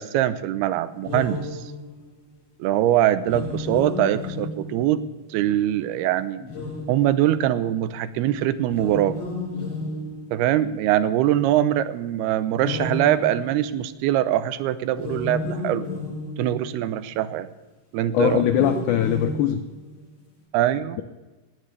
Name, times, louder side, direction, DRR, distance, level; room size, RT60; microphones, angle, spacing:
voice 1, 0.0-1.6 2.6-5.0 5.3-6.4 6.9-9.2 10.3-15.9 16.4-17.5 17.9-18.4 20.5-21.0, right 12 dB, 90° right, 13 dB, 2.7 m, -22 dB
sound 1, 1.0-2.1 3.2-5.2 6.3-7.5 8.6-10.7 12.6-13.9 14.9-16.8 18.1-20.1, left 2 dB, 55° left, 7.9 m, -32 dB
voice 2, 18.1-19.6, left 10 dB, 90° left, 8 dB, 1.7 m, -21 dB
19.0 x 16.5 x 3.3 m, 1.2 s
omnidirectional pair, 4.5 m